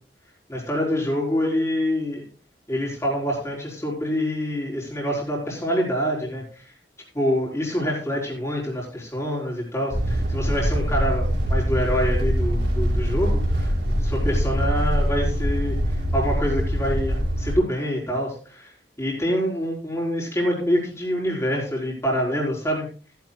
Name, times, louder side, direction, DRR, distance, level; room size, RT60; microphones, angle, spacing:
voice 1, 0.5-2.2 2.7-6.7 7.1-18.7 19.0-22.9, equal, 15° left, -3 dB, 4.3 m, -26 dB
sound 1, 9.9-17.6, equal, 75° right, 4.2 m, -23 dB
15.5 x 10.5 x 2.4 m, 0.37 s
head